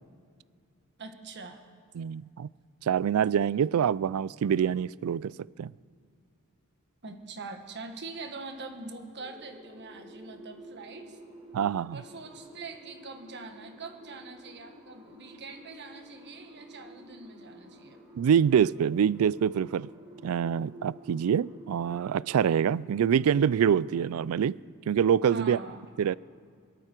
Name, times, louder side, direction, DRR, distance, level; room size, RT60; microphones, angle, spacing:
voice 1, 1.0-1.6 7.0-11.2 11.9-18.0 25.3-25.8, right 3 dB, 50° right, 1.5 m, -43 dB
voice 2, 2.0-2.5 2.8-5.3 5.6-5.7 11.5-12.0 18.2-19.9 20.2-24.6 24.9-25.6 26.0-26.1, right 8 dB, 75° right, 0.3 m, -25 dB
sound 1, 9.1-24.0, equal, 15° right, 3.2 m, -51 dB
23.5 x 12.5 x 4.5 m
head